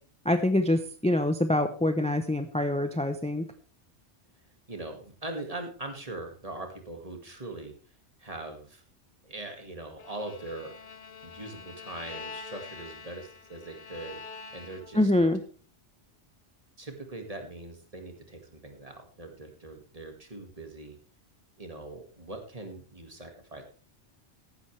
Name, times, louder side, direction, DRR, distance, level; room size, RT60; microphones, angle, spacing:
voice 1, 0.2-3.5 14.9-15.4, left 1 dB, 5° left, 8 dB, 0.6 m, -25 dB
voice 2, 4.7-7.7 8.2-8.8 9.2-10.7 11.2-15.3 16.8-21.0 21.6-23.6, right 2 dB, 30° right, 4 dB, 2.1 m, -41 dB
Bowed string instrument, 10.0-15.1, left 5 dB, 55° left, 1.3 m, -45 dB
14.0 x 11.5 x 3.3 m, 0.41 s
omnidirectional pair, 1.2 m